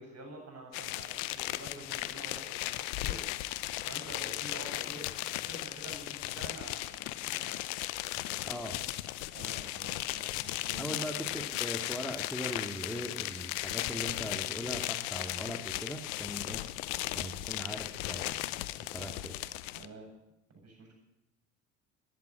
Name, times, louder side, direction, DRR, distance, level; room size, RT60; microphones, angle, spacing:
voice 1, 0.0-3.2 3.8-7.6 9.3-11.4 19.8-20.1 20.5-21.0, right 2 dB, 45° right, 1 dB, 8.0 m, -48 dB
sound 1, 0.7-19.9, left 17 dB, 80° left, 0.8 m, -36 dB
voice 2, 8.4-8.8 10.8-18.4 18.9-19.3, equal, 5° left, 2 dB, 2.2 m, -40 dB
12.5 x 11.0 x 9.3 m, 0.87 s
hypercardioid pair, 65°, 36 cm